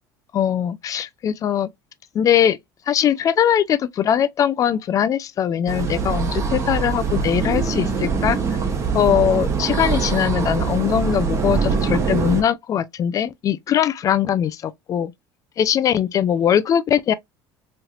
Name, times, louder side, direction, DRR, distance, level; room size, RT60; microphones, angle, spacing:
voice 1, 0.3-1.7 2.1-2.6 2.9-8.4 8.9-15.1 15.6-17.1, left 9 dB, 35° left, 0.3 m, -21 dB
sound 1, 5.7-12.4, right 5 dB, 30° right, 0.8 m, -23 dB
3.1 x 3.0 x 2.3 m
supercardioid pair, 110°, 9 cm